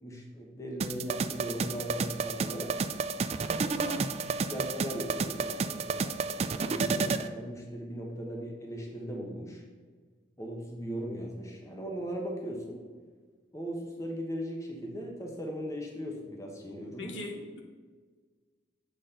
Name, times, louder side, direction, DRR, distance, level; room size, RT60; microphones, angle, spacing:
voice 1, 0.0-2.7 3.4-3.9 4.4-9.6 10.4-12.8 13.5-17.1, equal, 15° left, -1 dB, 1.0 m, -38 dB
sound 1, 0.8-7.3, right 4 dB, 35° right, 0.3 m, -31 dB
voice 2, 3.7-4.6 17.0-17.6, left 2 dB, 85° left, 2 dB, 1.3 m, -41 dB
7.7 x 4.2 x 6.6 m, 1.5 s
head